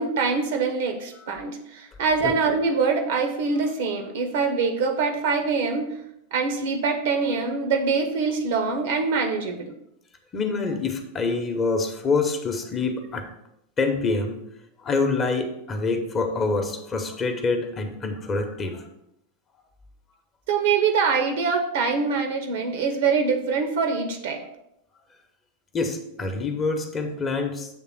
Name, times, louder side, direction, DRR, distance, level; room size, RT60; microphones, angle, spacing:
voice 1, 0.0-6.0 6.3-9.7 20.5-24.4, right 5 dB, 55° right, 4 dB, 1.0 m, -24 dB
voice 2, 10.3-13.3 13.8-14.4 14.8-18.8 25.7-27.7, left 3 dB, 25° left, 5 dB, 1.0 m, -26 dB
7.6 x 3.5 x 6.1 m, 0.80 s
figure-of-eight pair, 90°, 0 cm